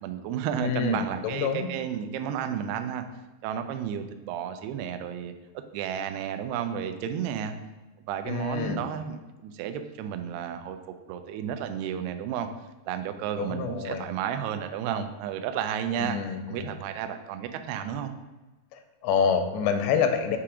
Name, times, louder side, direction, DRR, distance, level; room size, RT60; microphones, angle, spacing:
voice 1, 0.0-3.0 3.4-5.3 5.7-7.5 8.1-10.8 11.1-12.5 12.9-18.1, right 9 dB, 85° right, 8 dB, 2.3 m, -32 dB
voice 2, 0.6-1.1 1.3-1.7 8.3-8.8 13.4-14.1 16.0-16.7 18.7-20.4, left 6 dB, 85° left, 7 dB, 2.7 m, -27 dB
7.0 x 2.9 x 4.8 m, 1.1 s
omnidirectional pair, 5.0 m